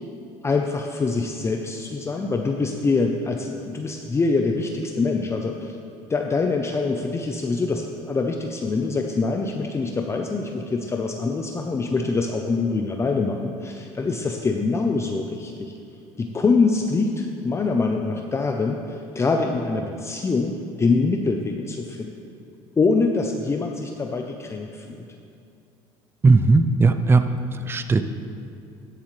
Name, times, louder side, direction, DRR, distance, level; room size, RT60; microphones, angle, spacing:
voice 1, 0.4-5.8 6.1-15.7 16.2-22.1 22.8-25.1, left 3 dB, 20° left, 3 dB, 0.7 m, -24 dB
voice 2, 26.2-27.2 27.7-28.0, right 3 dB, 20° right, 10 dB, 0.5 m, -17 dB
13.0 x 10.5 x 3.3 m, 2.5 s
supercardioid pair, 105°, 12 cm